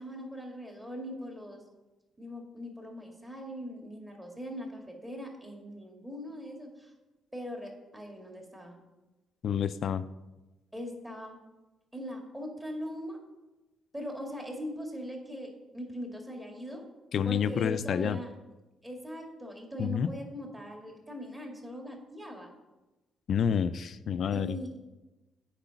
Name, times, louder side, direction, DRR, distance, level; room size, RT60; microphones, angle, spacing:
voice 1, 0.0-1.6 2.2-6.9 7.3-8.8 10.7-11.4 11.9-13.2 13.9-16.8 17.2-18.3 18.8-22.5 24.3-24.8, equal, 10° right, 1 dB, 2.0 m, -41 dB
voice 2, 9.4-10.0 17.1-18.2 19.8-20.1 23.3-24.6, left 7 dB, 60° left, 13 dB, 0.4 m, -28 dB
8.9 x 4.9 x 5.7 m, 1.1 s
cardioid pair, 90°, 0 cm